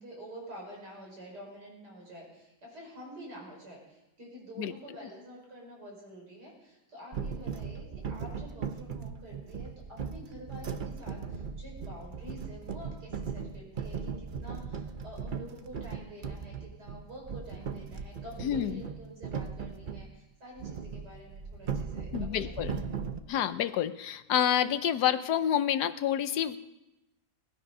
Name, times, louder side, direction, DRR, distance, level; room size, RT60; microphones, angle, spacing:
voice 1, 0.0-22.7, equal, 85° right, -2 dB, 5.7 m, -48 dB
sound 1, 7.1-20.1 20.6-23.2, right 6 dB, 45° right, 0.7 m, -38 dB
voice 2, 18.4-18.8 22.1-22.8 23.3-26.6, left 10 dB, 90° left, 12 dB, 1.3 m, -28 dB
19.0 x 12.0 x 5.5 m, 0.97 s
omnidirectional pair, 1.7 m